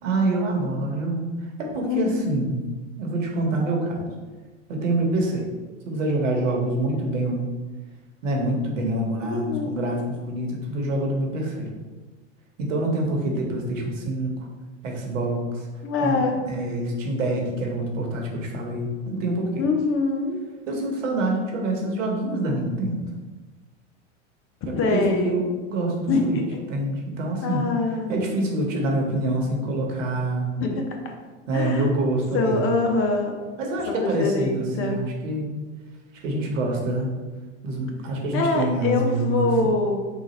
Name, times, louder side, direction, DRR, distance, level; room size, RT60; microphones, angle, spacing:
voice 1, 0.0-1.3 1.6-2.6 3.0-4.0 4.7-5.5 5.9-7.5 8.2-11.7 12.6-14.5 14.8-15.7 16.0-19.6 20.7-23.1 24.7-26.4 26.7-27.6 28.1-30.5 31.5-32.6 33.6-35.5 36.2-37.1 37.6-39.8, right 1 dB, 80° right, 0 dB, 1.1 m, -26 dB
voice 2, 1.9-2.4 9.2-9.8 15.8-16.4 19.6-20.4 24.7-25.4 26.1-26.6 27.4-28.1 30.6-30.9 31.5-31.9 32.3-33.3 33.9-35.0 38.3-40.1, left 3 dB, 35° left, 2 dB, 0.7 m, -24 dB
3.9 x 2.5 x 4.2 m, 1.3 s
hypercardioid pair, 105°, 38 cm